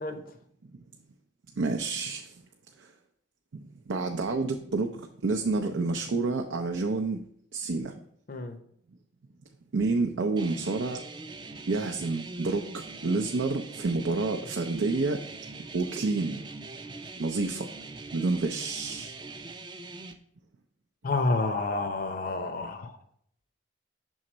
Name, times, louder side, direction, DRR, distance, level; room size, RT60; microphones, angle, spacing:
voice 1, 1.6-2.3 2.8-2.9 3.9-7.2 7.5-8.0 9.7-11.0 11.7-15.2 15.7-16.4 17.2-17.7 18.1-19.1, right 3 dB, 85° right, 4 dB, 0.5 m, -29 dB
sound 1, 10.4-20.1, right 3 dB, 25° right, 0.4 m, -42 dB
voice 2, 21.0-22.9, left 3 dB, 45° left, 7 dB, 0.6 m, -29 dB
6.3 x 3.9 x 4.3 m, 0.66 s
head